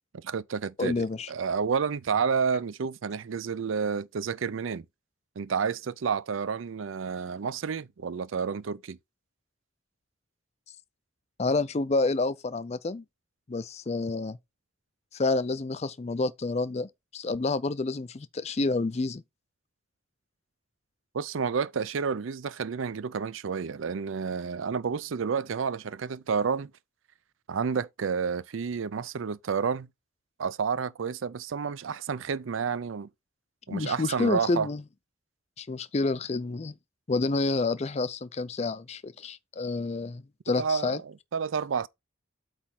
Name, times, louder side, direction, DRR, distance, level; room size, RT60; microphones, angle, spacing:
voice 1, 0.1-4.9 5.4-9.0 21.1-26.7 27.5-29.9 30.4-33.1 33.7-34.7 40.6-41.9, right 6 dB, 85° right, 0.5 m, -30 dB
voice 2, 0.8-1.3 11.4-13.0 13.5-14.4 15.1-19.2 33.7-34.8 35.6-36.7 37.1-41.0, left 3 dB, 35° left, 0.4 m, -29 dB
8.3 x 3.1 x 5.8 m
head